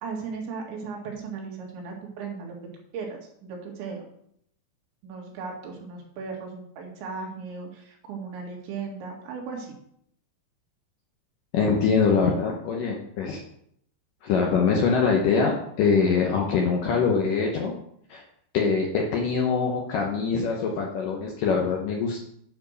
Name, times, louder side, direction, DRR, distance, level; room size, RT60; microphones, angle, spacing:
voice 1, 0.0-2.6 2.9-4.0 5.0-9.7, right 5 dB, 85° right, 0 dB, 4.2 m, -36 dB
voice 2, 11.5-13.4 14.2-17.7 18.1-18.2 18.5-22.2, left 5 dB, 70° left, 0 dB, 2.1 m, -23 dB
9.5 x 5.2 x 6.4 m, 0.69 s
omnidirectional pair, 5.1 m